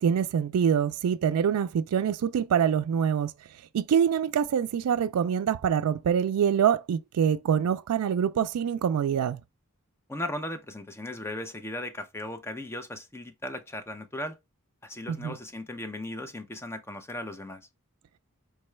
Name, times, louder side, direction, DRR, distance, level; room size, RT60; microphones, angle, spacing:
voice 1, 0.0-3.3 3.7-9.4 15.1-15.3, right 8 dB, 85° right, 0.3 m, -25 dB
voice 2, 10.1-14.4 14.8-17.6, left 1 dB, 10° left, 0.4 m, -37 dB
4.6 x 2.2 x 3.1 m
head